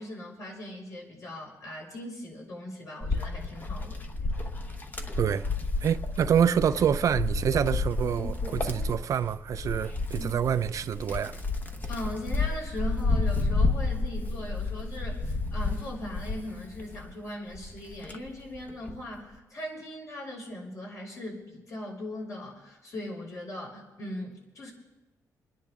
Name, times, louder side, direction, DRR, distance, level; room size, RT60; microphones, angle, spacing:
voice 1, 0.0-4.0 10.1-10.3 11.9-24.7, left 1 dB, 55° left, 6.0 m, -39 dB
Wind, 3.0-17.1 17.6-19.1, left 3 dB, 25° left, 1.1 m, -31 dB
voice 2, 5.8-11.4, right 8 dB, 55° right, 0.4 m, -26 dB
28.5 x 10.5 x 3.6 m
cardioid pair, 140°, 7 cm